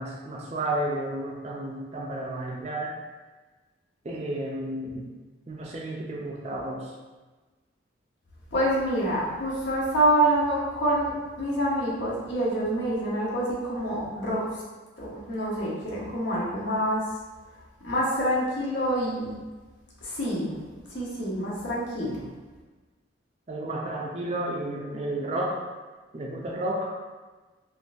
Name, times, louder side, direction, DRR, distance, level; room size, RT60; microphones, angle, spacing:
voice 1, 0.0-2.9 4.0-5.1 5.5-6.9 23.5-25.6 26.1-26.9, right 1 dB, 35° right, -2 dB, 0.4 m, -32 dB
voice 2, 8.5-14.4 15.0-17.0 17.8-19.3 20.0-20.5 20.9-22.2, right 1 dB, 70° left, -6 dB, 1.0 m, -26 dB
3.7 x 2.5 x 2.5 m, 1.3 s
head